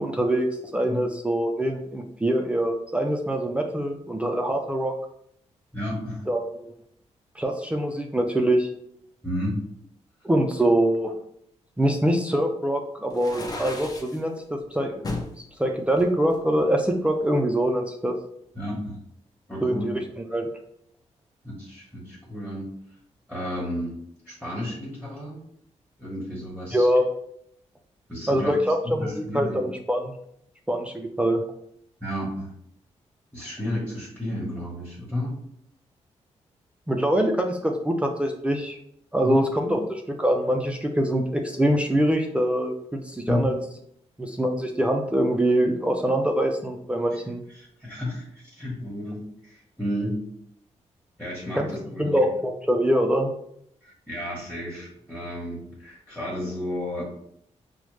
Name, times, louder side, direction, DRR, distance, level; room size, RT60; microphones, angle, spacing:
voice 1, 0.0-4.9 6.3-6.7 7.4-8.7 10.2-11.1 11.8-15.0 15.6-18.2 19.6-20.0 20.3-20.5 26.7-27.1 28.3-30.1 30.7-31.4 36.9-38.8 39.1-43.5 44.2-47.4 51.6-51.7 52.0-53.3, right 1 dB, 10° right, 2 dB, 0.4 m, -24 dB
voice 2, 5.7-6.3 9.2-9.6 18.5-19.0 19.5-19.8 21.4-22.7 23.3-24.0 24.2-25.4 26.0-26.9 28.1-28.5 28.8-29.6 32.0-32.5 33.3-35.4 39.2-39.8 43.2-43.5 47.5-50.2 51.2-52.1 53.8-57.0, left 1 dB, 5° left, -5 dB, 1.1 m, -32 dB
sound 1, 13.1-14.2 15.0-15.3 15.9-17.0, left 2 dB, 35° left, 0.6 m, -34 dB
4.8 x 2.1 x 3.1 m, 0.70 s
cardioid pair, 115°, 12 cm